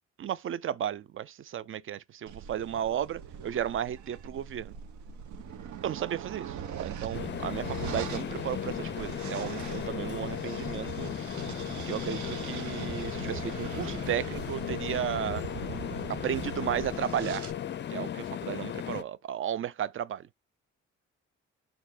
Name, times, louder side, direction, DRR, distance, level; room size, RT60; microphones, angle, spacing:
voice 1, 0.2-4.8 5.8-6.5 6.8-11.1 11.9-15.4 16.1-17.5 17.9-20.3, right 10 dB, 45° right, 0.5 m, -34 dB
sound 1, 2.3-17.5, right 8 dB, 70° right, 0.9 m, -41 dB
sound 2, 7.1-19.0, left 10 dB, 40° left, 0.4 m, -36 dB
4.4 x 2.7 x 3.9 m
cardioid pair, 90°, 30 cm